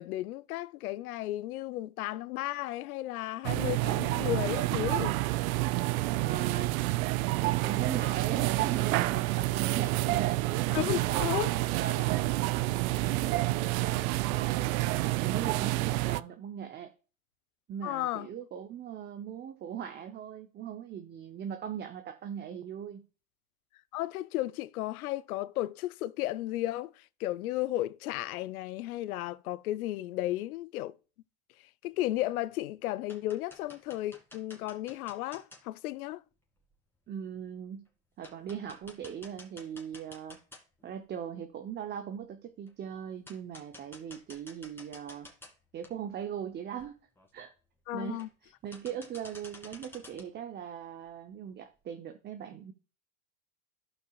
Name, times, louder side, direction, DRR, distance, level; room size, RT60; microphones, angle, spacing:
voice 1, 0.0-5.2 10.7-11.5 17.8-18.3 23.9-26.9 27.2-30.9 31.8-36.2 47.9-48.3, left 15 dB, 75° left, 0.6 m, -34 dB
sound 1, 3.4-16.2, right 19 dB, 70° right, 0.5 m, -29 dB
voice 2, 6.2-6.7 7.4-11.2 11.6-12.3 12.6-16.9 17.7-23.0 37.1-37.9 38.2-40.4 40.8-45.3 45.7-47.0 47.3-47.5 47.9-52.7, right 8 dB, 25° right, 0.7 m, -40 dB
sound 2, 32.2-32.5 32.9-35.6 36.7-36.8 37.4-37.5 37.9-38.0 38.2-40.9 41.3-41.4 42.7-42.8 43.3-45.5 45.8-45.9 46.5-46.6 46.8-46.9 47.2-47.5 48.1-48.5 48.7-50.3, left 2 dB, 5° left, 2.2 m, -51 dB
15.0 x 5.4 x 2.3 m
hypercardioid pair, 110°, 44 cm